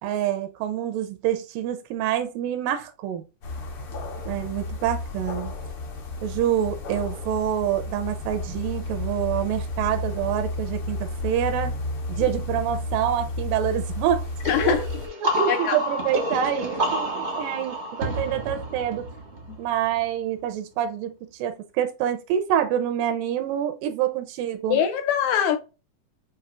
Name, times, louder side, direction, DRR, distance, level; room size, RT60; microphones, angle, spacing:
voice 1, 0.0-3.2 4.3-5.5 6.2-11.7 12.1-14.2 14.6-14.9 15.2-19.1 19.6-24.9, right 10 dB, 85° right, 2.3 m, -26 dB
sound 1, 3.4-15.1, left 2 dB, 55° left, 1.7 m, -32 dB
sound 2, 14.4-20.0, equal, 55° right, 0.7 m, -29 dB
voice 2, 14.5-14.8 15.5-15.7 24.7-25.6, left 8 dB, 80° left, 1.7 m, -22 dB
7.2 x 2.7 x 2.5 m
omnidirectional pair, 3.8 m